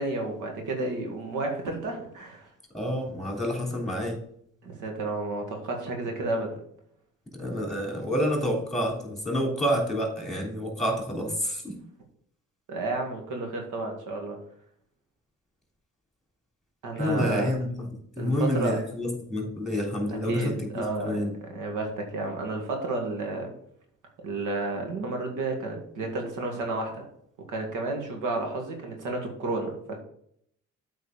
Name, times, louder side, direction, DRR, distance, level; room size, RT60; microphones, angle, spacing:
voice 1, 0.0-2.5 4.6-6.6 12.7-14.4 16.8-17.5 18.2-18.8 20.3-21.2 21.5-23.5 24.2-27.1 27.5-30.0, right 2 dB, 85° right, 3 dB, 2.0 m, -31 dB
voice 2, 2.7-4.2 7.3-11.8 17.0-20.7 21.0-21.3, equal, ahead, 0 dB, 3.4 m, -28 dB
8.3 x 4.6 x 5.0 m, 0.68 s
cardioid pair, 90°, 30 cm